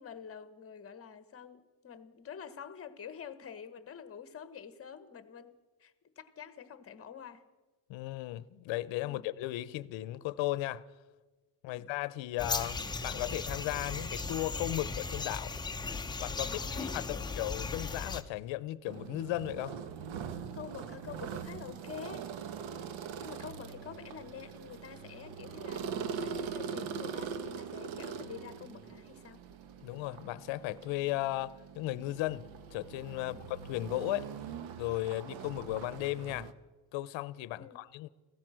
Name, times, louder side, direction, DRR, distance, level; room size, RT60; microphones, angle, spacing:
voice 1, 0.0-5.5 5.8-7.4 9.0-9.3 11.7-11.9 16.4-17.4 20.5-22.3 23.2-29.4 33.2-33.4 37.5-37.8, left 7 dB, 30° left, 1.2 m, -47 dB
voice 2, 7.9-10.8 11.6-15.5 16.2-19.7 29.8-32.4 32.7-34.3 34.8-36.5 36.9-38.1, left 16 dB, 75° left, 0.8 m, -36 dB
sound 1, 12.4-18.2, left 4 dB, 10° left, 0.7 m, -37 dB
sound 2, 18.9-36.5, right 6 dB, 80° right, 1.1 m, -42 dB
16.5 x 14.0 x 6.3 m
cardioid pair, 115°, 46 cm